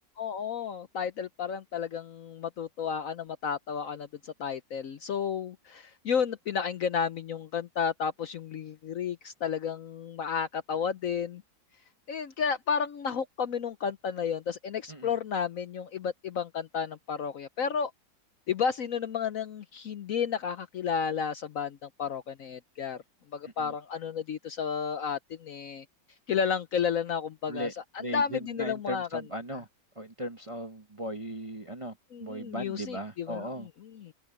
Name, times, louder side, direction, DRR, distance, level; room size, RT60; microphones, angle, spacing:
voice 1, 0.2-11.4 12.1-17.9 18.5-23.0 23.3-25.8 26.3-27.7 27.9-29.2 32.1-34.1, left 7 dB, 60° left, 1.0 m, -32 dB
voice 2, 28.0-29.7 30.0-31.9 32.2-33.7, right 1 dB, 25° right, 0.8 m, -37 dB
omnidirectional pair, 1.9 m